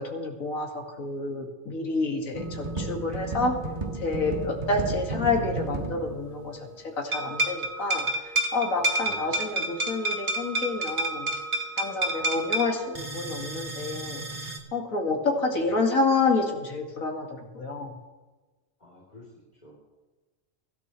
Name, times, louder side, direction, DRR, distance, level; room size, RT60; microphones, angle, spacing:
voice 1, 0.0-3.5 4.0-6.6 7.0-8.1 8.5-11.3 11.8-14.2 14.7-17.3 17.5-17.9, left 3 dB, 85° left, 1 dB, 2.4 m, -28 dB
sound 1, 2.3-6.8 7.1-14.6, right 1 dB, 35° right, 1.7 m, -31 dB
voice 2, 15.4-15.7 18.8-19.3 19.6-19.8, left 1 dB, 30° left, -5 dB, 3.4 m, -48 dB
23.5 x 13.0 x 3.1 m, 1.2 s
omnidirectional pair, 1.4 m